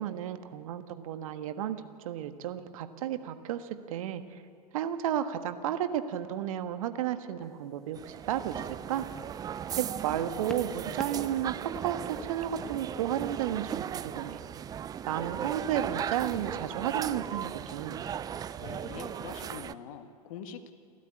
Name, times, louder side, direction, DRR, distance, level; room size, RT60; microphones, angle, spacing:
voice 1, 0.0-4.4 4.7-9.1 9.8-14.4 15.1-18.1, right 10 dB, 60° right, 9 dB, 1.5 m, -33 dB
sound 1, 7.4-7.7 8.5-9.8 10.5-11.4 11.7-13.0 13.9-14.0, equal, ahead, 1.8 m, -45 dB
sound 2, 8.0-19.7, right 9 dB, 20° right, 0.5 m, -37 dB
voice 2, 18.6-20.7, left 7 dB, 55° left, 7 dB, 1.9 m, -44 dB
28.0 x 13.5 x 8.7 m, 2.5 s
figure-of-eight pair, 100°, 21 cm